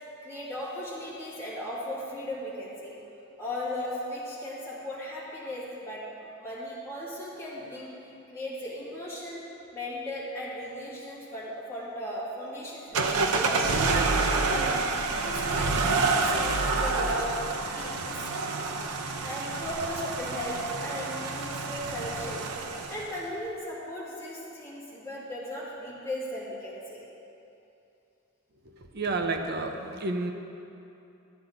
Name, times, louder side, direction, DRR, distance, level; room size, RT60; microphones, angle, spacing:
voice 1, 0.0-2.9 3.4-7.9 8.3-9.4 9.7-14.6 14.9-17.3 17.7-18.2 19.2-22.5 22.9-27.0, left 1 dB, 10° left, -9 dB, 2.4 m, -37 dB
sound 1, 12.9-23.2, right 3 dB, 85° right, 0.7 m, -28 dB
voice 2, 28.6-30.3, right 3 dB, 45° right, 4 dB, 0.7 m, -31 dB
12.0 x 8.4 x 3.9 m, 2.9 s
head